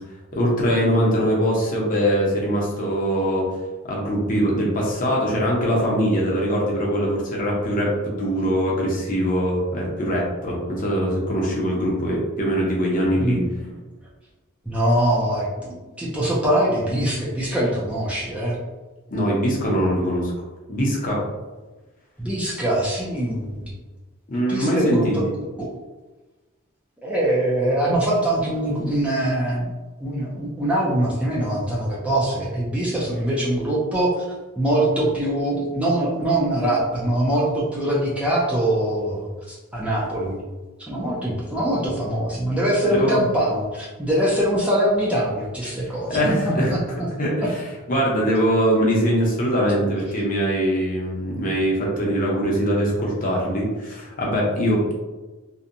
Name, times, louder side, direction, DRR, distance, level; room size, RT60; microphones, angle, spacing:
voice 1, 0.3-3.5 3.8-13.4 19.1-20.3 20.7-21.2 24.3-25.2 43.0-43.2 46.1-46.7 47.2-47.6 47.9-55.0, equal, 40° left, -3 dB, 0.6 m, -22 dB
voice 2, 13.2-13.5 14.7-18.6 22.2-23.7 24.5-25.2 25.6-25.7 27.0-29.7 30.0-34.2 34.6-40.4 40.8-46.2 46.4-46.8, right 1 dB, 5° right, -6 dB, 0.4 m, -23 dB
2.7 x 2.1 x 2.5 m, 1.2 s
head